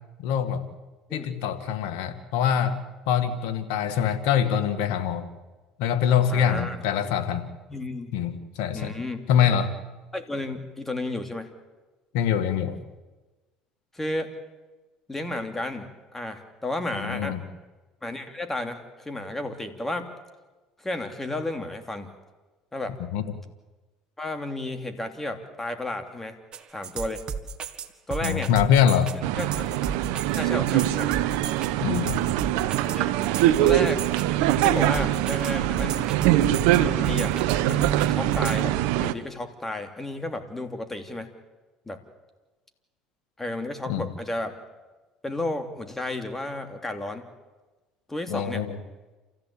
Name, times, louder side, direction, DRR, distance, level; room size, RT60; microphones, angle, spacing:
voice 1, 0.2-0.6 1.1-2.8 3.1-5.3 5.8-7.5 8.1-8.9 9.3-9.7 12.1-12.8 17.0-17.4 23.1-23.2 28.2-29.1 31.8-32.2 43.9-44.1 48.3-48.8, left 8 dB, 75° left, 9 dB, 1.9 m, -24 dB
voice 2, 6.3-6.8 7.7-8.1 8.7-9.3 10.1-11.5 13.9-14.3 15.1-17.4 18.0-20.1 20.8-22.1 22.7-23.0 24.2-26.4 26.7-27.2 28.1-28.5 29.4-29.7 30.3-31.1 32.9-33.1 33.6-34.0 34.6-36.2 36.8-37.3 37.6-41.3 41.9-42.0 43.4-44.6 45.2-47.2 48.1-48.6, left 2 dB, 15° left, 7 dB, 3.0 m, -32 dB
sound 1, 26.5-38.6, right 6 dB, 45° right, 1.7 m, -34 dB
sound 2, 29.2-39.1, right 14 dB, 75° right, 1.0 m, -23 dB
28.0 x 15.0 x 8.7 m, 1.2 s
supercardioid pair, 80°, 2 cm